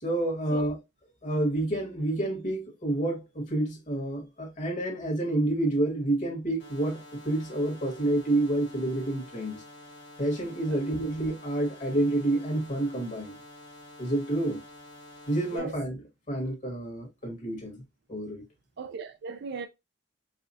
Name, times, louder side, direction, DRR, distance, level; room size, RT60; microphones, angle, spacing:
voice 1, 0.0-0.7 1.2-9.6 10.2-13.3 14.0-14.6 15.3-16.0 16.3-17.8 18.1-18.4, right 1 dB, 45° left, 1.6 m, -29 dB
sound 1, 6.6-15.6, left 1 dB, 70° left, 1.6 m, -49 dB
voice 2, 18.8-19.7, right 5 dB, 60° right, 0.4 m, -37 dB
4.8 x 2.3 x 2.7 m
head